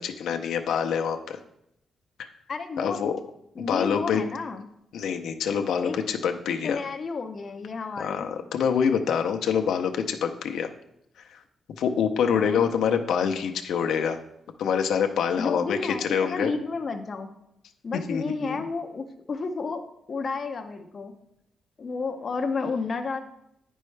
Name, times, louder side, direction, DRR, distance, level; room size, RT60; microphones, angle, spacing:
voice 1, 0.0-1.4 2.2-2.3 2.8-3.1 3.6-4.2 4.9-6.8 8.0-10.7 11.2-11.4 11.8-14.2 14.6-16.5 18.1-18.7, left 7 dB, 85° left, 4 dB, 0.6 m, -26 dB
voice 2, 2.5-3.0 3.6-4.7 5.8-6.0 6.6-8.3 12.2-12.6 15.4-17.3 17.8-19.8 20.1-21.1 21.8-23.2, left 4 dB, 30° left, 5 dB, 0.5 m, -31 dB
9.2 x 5.4 x 3.2 m, 0.79 s
wide cardioid pair, 180°, 0 cm